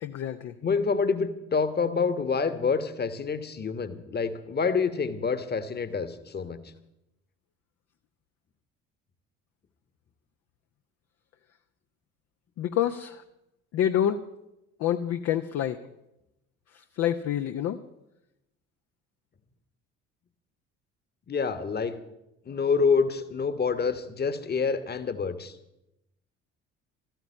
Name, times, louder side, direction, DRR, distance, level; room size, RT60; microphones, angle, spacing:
voice 1, 0.0-0.5 12.6-13.2 13.7-14.2 14.8-15.8 16.7-17.8, left 10 dB, 45° left, 8 dB, 0.7 m, -27 dB
voice 2, 0.6-6.6 21.3-22.0 22.5-25.6, left 5 dB, 25° left, 12 dB, 1.3 m, -27 dB
13.5 x 9.2 x 8.5 m, 0.89 s
figure-of-eight pair, 55°, 37 cm